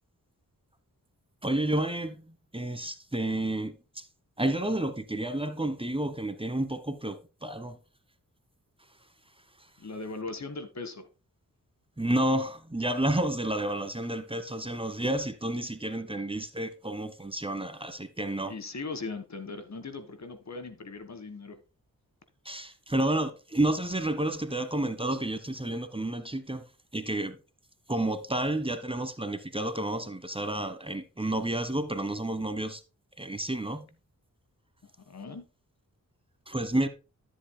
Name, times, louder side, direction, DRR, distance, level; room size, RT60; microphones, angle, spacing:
voice 1, 1.4-4.1 4.4-7.8 12.0-18.5 22.4-26.6 26.9-27.4 27.9-32.8 33.2-33.9 36.5-36.9, right 1 dB, 15° right, 1.3 m, -30 dB
voice 2, 9.8-11.1 18.5-21.6 34.8-35.5, left 3 dB, 55° left, 1.6 m, -39 dB
13.0 x 8.1 x 2.2 m
cardioid pair, 60°, 34 cm